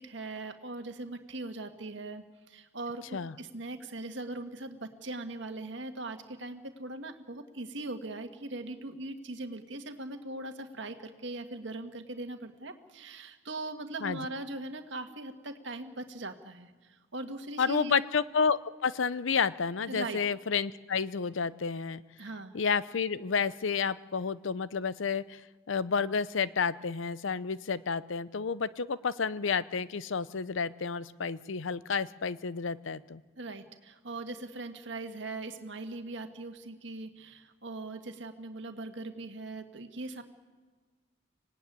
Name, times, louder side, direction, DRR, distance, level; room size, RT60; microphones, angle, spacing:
voice 1, 0.0-18.0 19.9-20.2 22.2-22.6 33.4-40.2, right 2 dB, 65° right, 6 dB, 1.8 m, -40 dB
voice 2, 17.6-22.0 22.5-25.4 25.7-33.2, left 5 dB, 70° left, 17 dB, 0.6 m, -30 dB
25.5 x 17.5 x 9.4 m, 1.4 s
head